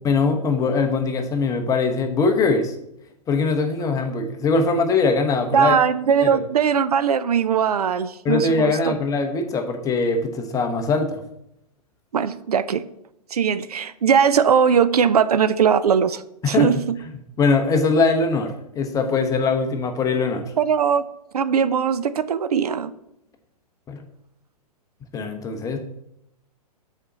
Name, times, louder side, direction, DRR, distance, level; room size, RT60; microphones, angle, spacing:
voice 1, 0.0-2.7 3.3-5.8 6.2-6.3 8.2-11.2 16.4-16.7 17.4-20.5 23.9-24.0 25.1-25.8, left 4 dB, 15° left, 5 dB, 0.9 m, -21 dB
voice 2, 5.5-8.9 12.1-12.8 13.3-17.0 20.6-21.0 21.3-22.9, right 7 dB, 70° right, 14 dB, 0.5 m, -20 dB
6.7 x 4.2 x 6.1 m, 0.80 s
figure-of-eight pair, 115°, 20 cm